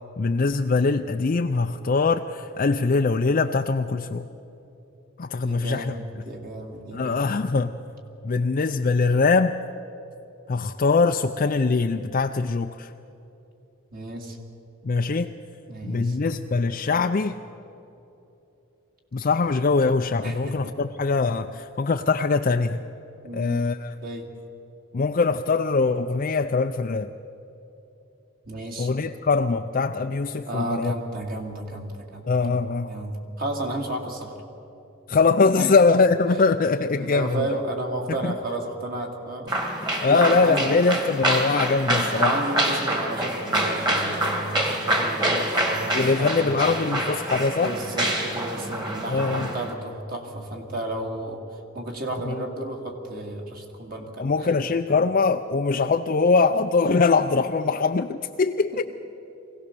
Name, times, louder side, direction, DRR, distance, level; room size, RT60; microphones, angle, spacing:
voice 1, 0.2-4.3 5.2-5.9 6.9-7.8 8.2-9.5 10.5-12.9 14.8-15.3 15.8-17.4 19.1-22.8 23.3-23.9 24.9-27.1 28.8-30.9 32.3-32.9 35.1-37.4 38.2-38.3 40.0-42.4 46.0-47.8 49.1-49.5 52.3-52.4 54.2-58.8, left 4 dB, 40° left, 6 dB, 0.4 m, -22 dB
voice 2, 5.4-7.4 13.9-14.4 15.7-16.2 20.2-20.8 23.2-23.6 24.0-24.4 28.4-28.9 30.4-32.5 32.9-34.4 35.5-35.7 37.0-39.6 40.1-40.7 42.1-46.6 47.6-54.5, right 1 dB, 40° right, 1 dB, 2.2 m, -32 dB
sound 1, 39.5-49.7, right 1 dB, 20° right, 2.0 m, -26 dB
23.0 x 17.0 x 6.8 m, 2.9 s
head